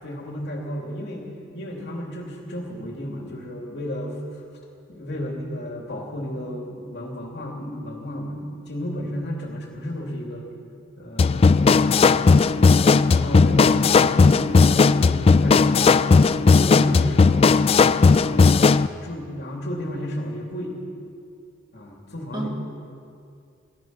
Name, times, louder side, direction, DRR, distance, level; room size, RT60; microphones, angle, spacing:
voice 1, 0.0-4.1 4.9-10.5 11.0-12.7 13.1-14.6 14.9-17.6 18.1-20.8 21.7-22.5, equal, 60° left, -1 dB, 2.8 m, -33 dB
sound 1, 11.2-18.9, left 4 dB, 30° left, 0.3 m, -16 dB
voice 2, 14.3-14.8 22.3-22.5, right 2 dB, 25° right, -1 dB, 2.2 m, -31 dB
19.0 x 13.0 x 5.9 m, 2.4 s
head